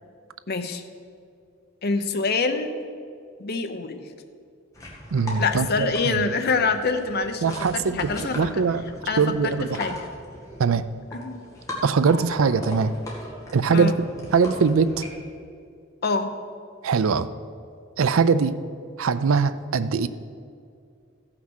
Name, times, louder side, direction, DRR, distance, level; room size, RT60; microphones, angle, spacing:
voice 1, 0.5-0.8 1.8-2.8 3.4-4.0 5.4-8.6 9.1-10.1 11.1-11.4 13.7-14.0 16.0-16.3, left 4 dB, 50° left, 7 dB, 0.8 m, -26 dB
sound 1, 4.7-15.1, left 1 dB, 15° left, 1.9 m, -38 dB
voice 2, 5.1-6.3 7.4-8.8 9.2-9.8 10.6-10.9 11.8-12.9 13.5-13.9 14.3-15.0 16.8-17.3 18.0-18.5 19.0-20.1, right 5 dB, 90° right, 14 dB, 0.5 m, -22 dB
15.0 x 5.9 x 6.3 m, 2.3 s
head